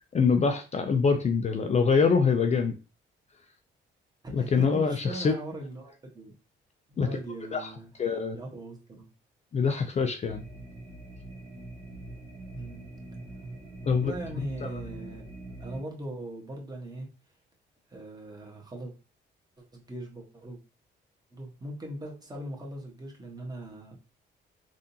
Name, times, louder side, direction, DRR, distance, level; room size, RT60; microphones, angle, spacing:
voice 1, 0.1-2.7 4.3-5.3 7.0-7.1 7.5-7.7 8.0-8.4 9.5-10.4 13.9-14.1 14.6-14.8, left 5 dB, 35° left, 6 dB, 0.5 m, -24 dB
voice 2, 4.2-6.3 6.9-7.9 8.3-9.1 12.5-12.9 13.8-17.1 17.9-18.9 19.6-20.6 21.3-23.9, right 1 dB, 20° right, -1 dB, 1.3 m, -40 dB
sound 1, 10.2-15.8, right 2 dB, 65° right, 1.4 m, -43 dB
3.6 x 2.5 x 2.8 m, 0.32 s
cardioid pair, 90°, 20 cm